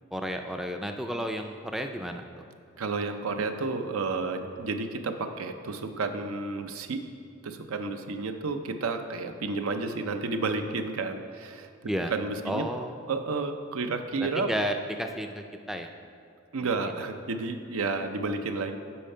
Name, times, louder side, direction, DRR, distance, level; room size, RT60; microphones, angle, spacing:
voice 1, 0.1-2.2 11.9-12.1 12.5-12.9 14.2-15.9, equal, ahead, 5 dB, 0.3 m, -32 dB
voice 2, 2.8-7.1 7.4-11.7 12.0-12.7 13.1-14.5 16.5-18.8, right 3 dB, 85° right, 7 dB, 0.6 m, -31 dB
8.7 x 5.6 x 5.5 m, 2.4 s
head